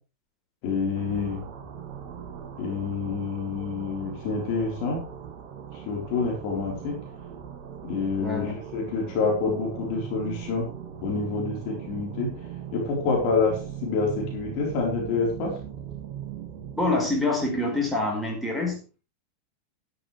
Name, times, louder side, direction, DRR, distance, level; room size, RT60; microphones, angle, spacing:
voice 1, 0.6-1.4 2.6-5.0 5.7-7.0 7.8-10.7 11.0-12.3 12.7-15.6, left 4 dB, 45° left, -1 dB, 4.3 m, -27 dB
sound 1, 1.0-17.2, right 9 dB, 45° right, 1.8 m, -39 dB
voice 2, 8.2-8.5 16.7-19.0, left 2 dB, ahead, -1 dB, 4.7 m, -26 dB
12.0 x 11.5 x 3.4 m, 0.34 s
figure-of-eight pair, 90°, 0 cm